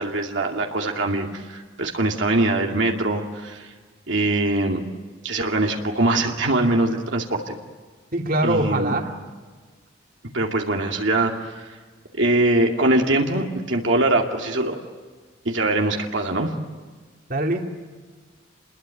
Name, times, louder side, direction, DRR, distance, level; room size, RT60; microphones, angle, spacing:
voice 1, 0.0-3.7 4.1-4.8 5.2-7.5 8.4-9.0 10.3-11.8 12.1-14.8 15.4-16.5, right 2 dB, 65° right, 1 dB, 2.4 m, -22 dB
voice 2, 8.1-9.1 17.3-17.7, right 1 dB, 45° right, 3 dB, 2.6 m, -23 dB
29.5 x 21.5 x 9.2 m, 1.5 s
head